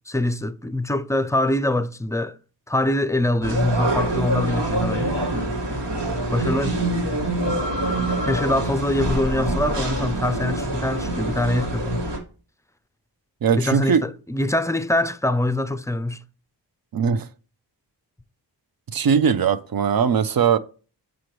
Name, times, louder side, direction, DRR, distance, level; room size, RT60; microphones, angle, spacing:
voice 1, 0.1-2.4 2.7-5.1 6.3-6.8 8.2-12.1 13.6-16.2, left 1 dB, 10° left, 0.3 m, -24 dB
sound 1, 3.4-12.2, right 1 dB, 90° right, 1.7 m, -25 dB
voice 2, 13.4-14.0 16.9-17.3 18.9-20.6, right 7 dB, 60° right, 0.5 m, -20 dB
6.3 x 5.1 x 3.0 m
wide cardioid pair, 70°, 41 cm